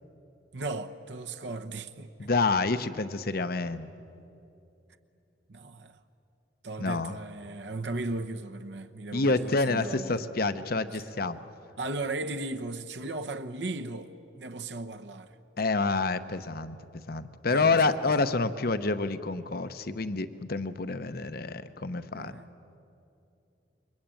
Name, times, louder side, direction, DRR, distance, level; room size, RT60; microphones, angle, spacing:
voice 1, 0.5-2.3 5.5-6.0 6.6-10.3 11.8-15.4 17.5-18.3 22.1-22.5, right 2 dB, 65° right, 1.0 m, -37 dB
voice 2, 2.2-3.9 6.8-7.1 9.1-11.4 15.6-16.8 17.1-22.4, left 3 dB, 50° left, 0.9 m, -28 dB
28.0 x 23.5 x 9.0 m
head